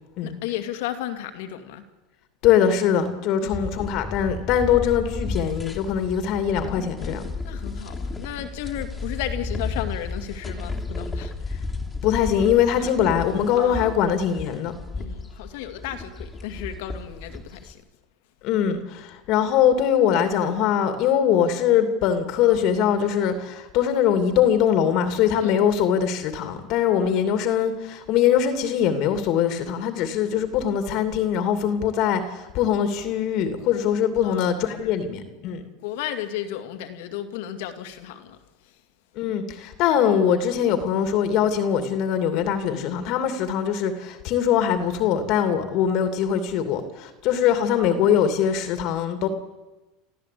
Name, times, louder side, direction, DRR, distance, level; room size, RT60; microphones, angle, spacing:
voice 1, 0.2-1.8 3.4-3.7 7.4-11.3 12.8-12.9 13.5-13.9 15.0-17.8 25.4-25.5 34.2-34.5 34.8-34.9 35.8-38.4 38.6-38.8, left 11 dB, 75° left, 2.3 m, -34 dB
voice 2, 2.4-7.2 12.0-14.7 18.4-35.6 39.2-49.3, left 9 dB, 55° left, 2.6 m, -22 dB
sound 1, 3.5-17.7, left 3 dB, 10° left, 3.1 m, -33 dB
29.0 x 14.0 x 8.5 m
supercardioid pair, 115°, 0 cm